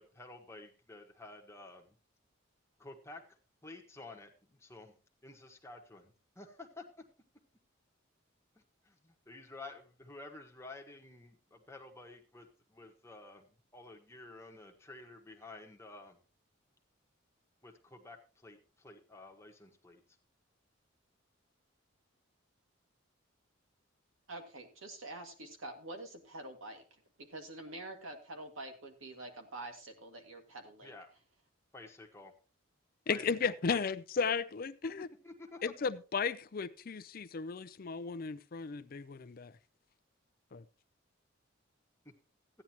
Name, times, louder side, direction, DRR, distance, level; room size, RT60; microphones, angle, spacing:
voice 1, 0.0-2.0 2.8-3.2 3.6-4.9 5.2-7.0 8.8-13.5 13.7-16.2 17.6-20.0 30.8-31.1 31.7-32.3 33.1-33.9 34.8-35.7, left 2 dB, 15° left, 1.3 m, -51 dB
voice 2, 24.3-26.8 27.2-30.9, right 2 dB, 85° right, 2.1 m, -46 dB
voice 3, 33.1-35.1 35.6-39.5 40.5-40.6, left 5 dB, 45° left, 0.5 m, -35 dB
15.0 x 9.9 x 2.9 m
head